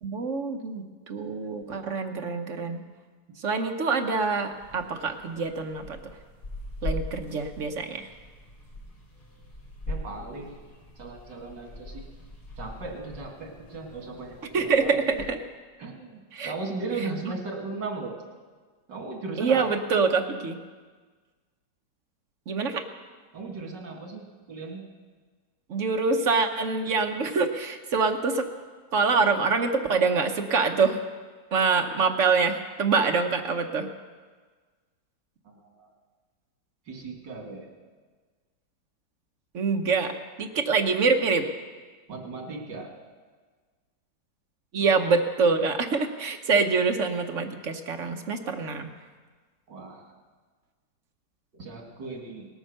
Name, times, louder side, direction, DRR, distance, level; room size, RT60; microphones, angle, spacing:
voice 1, 0.0-2.8 3.4-6.0 6.8-8.1 14.5-15.4 16.3-16.5 19.4-20.6 22.5-22.8 25.7-28.5 28.9-31.0 31.5-33.9 39.5-41.5 44.7-48.9, right 4 dB, 55° right, 5 dB, 1.1 m, -25 dB
sound 1, 4.5-15.3, left 1 dB, 60° left, 4.7 m, -41 dB
voice 2, 9.9-10.6 11.0-12.0 12.6-14.9 15.8-18.2 18.9-19.6 23.3-24.8 35.4-35.9 36.9-37.7 42.1-42.9 49.7-50.1 51.5-52.5, right 3 dB, 80° right, 1 dB, 2.7 m, -37 dB
18.5 x 8.9 x 6.4 m, 1.5 s
omnidirectional pair, 1.9 m